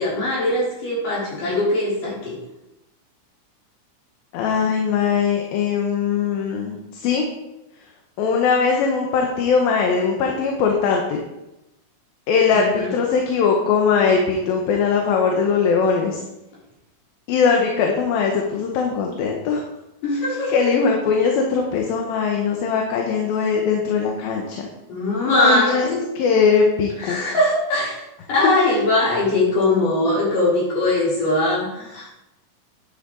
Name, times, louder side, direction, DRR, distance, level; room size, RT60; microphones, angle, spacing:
voice 1, 0.0-2.4 12.5-12.9 20.0-20.5 24.9-26.0 27.0-28.0 28.3-32.1, left 2 dB, 65° left, -7 dB, 5.2 m, -21 dB
voice 2, 4.3-7.3 8.2-11.2 12.3-16.2 17.3-19.6 20.5-24.7 25.3-25.9 26.2-27.2 28.4-28.7, left 5 dB, 80° left, 1 dB, 2.8 m, -20 dB
9.3 x 8.6 x 3.8 m, 0.94 s
omnidirectional pair, 4.1 m